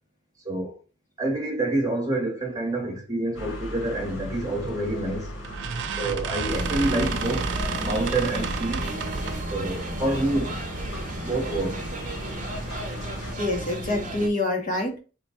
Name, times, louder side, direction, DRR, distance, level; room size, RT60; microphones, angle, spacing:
voice 1, 0.4-0.8 1.2-5.3 6.0-7.5 7.8-8.9 9.5-10.6 11.2-11.9, right 2 dB, 20° right, 0.9 m, -27 dB
sound 1, 3.3-13.3, equal, 85° left, 1.8 m, -38 dB
sound 2, 4.7-5.0 5.4-9.5, right 7 dB, 65° right, 0.4 m, -32 dB
sound 3, 6.5-14.3, right 1 dB, 40° right, 0.7 m, -32 dB
voice 2, 13.4-15.0, left 2 dB, 45° left, 0.8 m, -26 dB
3.2 x 2.2 x 4.1 m
head